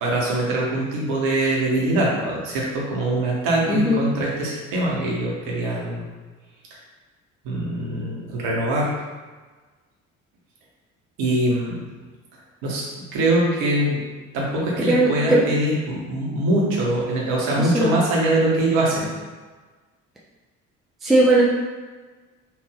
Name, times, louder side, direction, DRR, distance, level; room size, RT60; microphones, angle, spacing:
voice 1, 0.0-6.1 7.4-8.9 11.2-11.8 12.6-12.8 13.1-14.1 14.3-19.1, right 1 dB, 60° right, -4 dB, 1.1 m, -23 dB
voice 2, 3.7-4.0 14.9-15.4 17.6-18.0 21.0-21.4, right 1 dB, ahead, -5 dB, 0.5 m, -18 dB
3.4 x 2.6 x 3.4 m, 1.3 s
figure-of-eight pair, 50°, 40 cm